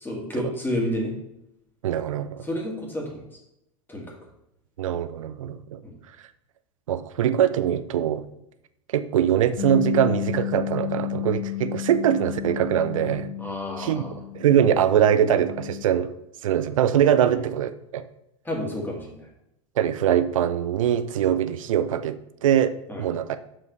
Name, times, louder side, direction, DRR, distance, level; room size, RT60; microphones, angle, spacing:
voice 1, 0.0-1.1 2.4-3.2 3.9-4.1 5.8-5.9 13.4-14.2 18.4-19.3 22.9-23.1, left 1 dB, 10° left, -1 dB, 2.1 m, -30 dB
voice 2, 1.8-2.4 4.8-5.8 6.9-8.3 8.9-13.3 13.8-14.0 14.3-16.1 16.4-18.0 19.8-23.4, right 10 dB, 75° right, 12 dB, 0.5 m, -22 dB
Bass guitar, 9.6-15.8, left 15 dB, 75° left, 1.4 m, -32 dB
7.1 x 5.4 x 3.2 m, 0.81 s
hypercardioid pair, 90°, 17 cm